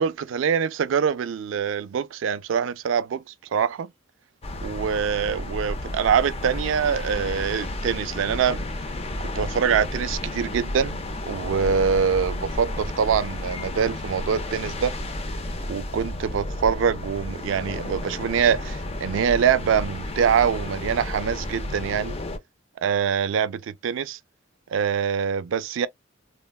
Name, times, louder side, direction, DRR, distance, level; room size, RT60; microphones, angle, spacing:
voice 1, 0.0-3.2 3.5-3.9 4.6-8.6 9.4-15.0 15.7-22.1 22.8-24.2 24.7-25.9, right 7 dB, 70° right, 0.3 m, -24 dB
sound 1, 4.4-22.4, left 1 dB, 30° left, 0.4 m, -32 dB
3.4 x 2.1 x 2.2 m
head